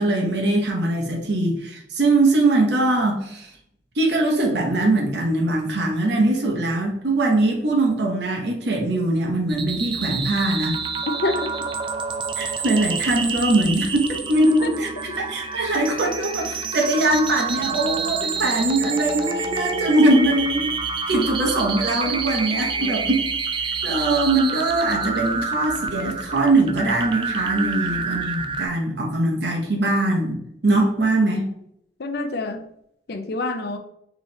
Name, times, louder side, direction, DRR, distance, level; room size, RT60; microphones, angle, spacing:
voice 1, 0.0-3.5 4.0-10.8 12.4-14.9 15.1-20.7 21.1-23.3 23.6-31.5, right 2 dB, 65° right, 0 dB, 0.9 m, -21 dB
sound 1, 9.5-28.7, right 5 dB, 30° right, 0.4 m, -28 dB
voice 2, 22.5-23.0 27.5-28.2 32.0-32.6 33.1-33.8, left 2 dB, 60° left, 7 dB, 0.5 m, -28 dB
4.7 x 3.0 x 3.1 m, 0.74 s
head